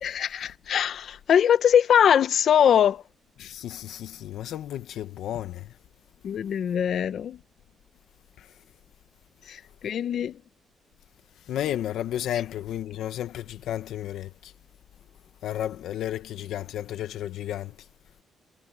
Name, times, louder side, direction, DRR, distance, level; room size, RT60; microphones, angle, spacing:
voice 1, 0.0-3.0 6.2-7.4 9.5-10.4, left 9 dB, 65° left, 0.9 m, -22 dB
voice 2, 3.4-5.7 8.4-8.5 11.5-14.5 15.4-17.8, left 12 dB, 80° left, 1.1 m, -32 dB
cardioid pair, 105°, 0 cm